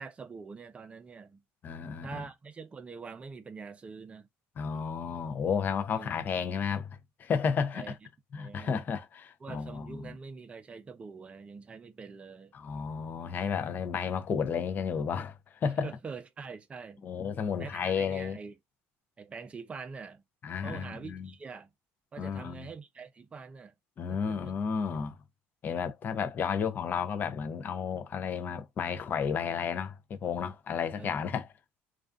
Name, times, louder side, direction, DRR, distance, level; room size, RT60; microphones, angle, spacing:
voice 1, 0.0-1.4 2.0-4.3 5.9-6.1 7.7-7.9 8.3-8.9 9.4-12.5 15.8-17.1 17.6-18.6 19.2-20.2 20.6-21.7 22.1-23.7 24.1-24.5 31.0-31.3, right 5 dB, 20° right, 0.5 m, -44 dB
voice 2, 1.6-2.2 4.6-8.0 8.3-10.1 12.5-15.9 17.0-18.4 20.4-21.3 22.2-22.7 24.0-25.2 25.6-31.5, left 6 dB, 35° left, 0.5 m, -32 dB
2.4 x 2.3 x 2.3 m
cardioid pair, 115°, 5 cm